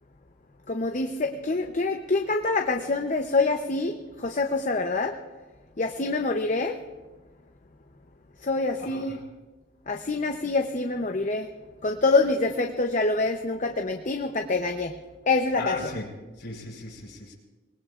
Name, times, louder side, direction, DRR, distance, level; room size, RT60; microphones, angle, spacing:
voice 1, 0.7-5.1 5.8-6.8 8.4-9.2 9.9-11.5 11.8-14.9 15.3-15.8, left 3 dB, 40° left, 4 dB, 0.7 m, -26 dB
voice 2, 8.8-9.2 15.6-16.1 16.4-17.3, left 2 dB, 55° left, -1 dB, 4.5 m, -36 dB
26.5 x 20.0 x 2.5 m, 1.2 s
head